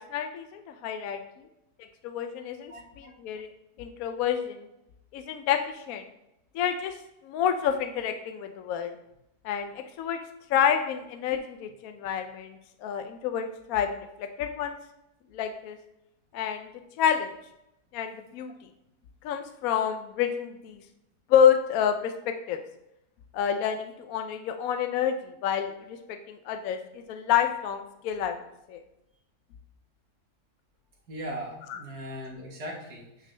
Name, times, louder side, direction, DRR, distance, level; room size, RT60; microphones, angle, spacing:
voice 1, 0.1-1.2 2.0-2.7 3.2-3.5 3.8-4.6 5.1-6.0 6.5-6.9 7.2-8.9 9.4-10.2 10.5-14.8 15.3-15.8 16.3-16.7 17.0-17.3 17.9-18.5 19.2-20.8 21.3-22.6 23.3-25.1 25.4-26.8 27.1-28.4 28.7-28.8, left 8 dB, 70° left, 7 dB, 0.9 m, -28 dB
voice 2, 2.6-3.1 31.1-33.3, equal, 75° right, -2 dB, 1.9 m, -39 dB
8.8 x 3.8 x 3.2 m, 0.85 s
omnidirectional pair, 1.7 m